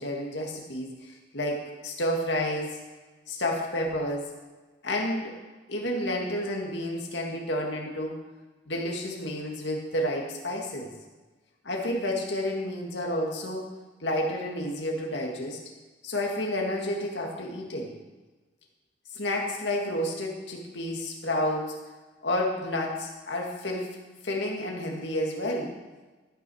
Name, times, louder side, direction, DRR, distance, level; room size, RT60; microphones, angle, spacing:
voice 1, 0.0-2.8 3.3-4.3 4.8-5.4 5.7-8.2 8.7-10.9 11.6-13.7 14.0-15.6 16.0-17.9 19.1-21.8 22.2-23.9 24.2-25.7, left 1 dB, 70° left, 0 dB, 2.3 m, -30 dB
13.5 x 6.3 x 6.4 m, 1.2 s
head